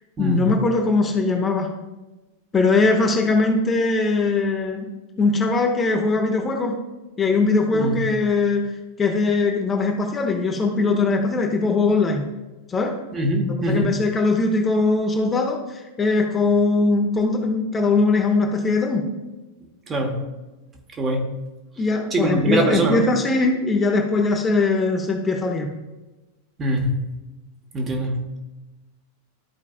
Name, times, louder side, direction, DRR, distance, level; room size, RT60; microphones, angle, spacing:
voice 1, 0.2-1.7 2.5-4.9 5.2-6.8 7.2-8.7 9.0-12.2 12.7-13.0 13.7-19.1 21.8-25.7, left 3 dB, 20° left, 2 dB, 0.9 m, -21 dB
voice 2, 13.1-13.9 19.9-20.2 21.0-21.3 22.1-23.1 26.6-26.9 27.7-28.4, right 1 dB, 20° right, 2 dB, 1.3 m, -23 dB
13.0 x 4.7 x 2.4 m, 1.1 s
figure-of-eight pair, 90°, 0 cm